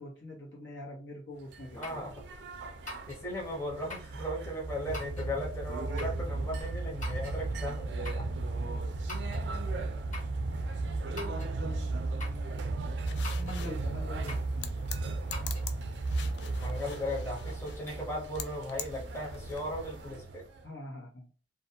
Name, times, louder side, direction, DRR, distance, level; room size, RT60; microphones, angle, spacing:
voice 1, 0.0-2.0 11.2-12.9 13.4-15.0 20.6-21.3, left 1 dB, 90° left, -1 dB, 1.1 m, -45 dB
sound 1, 1.5-20.6, right 3 dB, 70° right, 0.4 m, -35 dB
sound 2, 1.8-2.1 2.9-3.2 3.9-4.2 4.9-5.3 6.0-6.2 7.0-7.4 8.0-8.3 9.1-9.5 10.1-10.4 11.2-11.5 12.2-12.5 13.2-13.6 14.3-14.5 15.3-15.7, left 2 dB, 45° left, 0.9 m, -43 dB
voice 2, 1.8-2.2 3.1-8.3 16.6-20.4, left 1 dB, 15° left, -2 dB, 0.7 m, -37 dB
sound 3, 13.1-20.2, left 7 dB, 65° left, 0.3 m, -46 dB
2.5 x 2.2 x 2.7 m, 0.38 s
head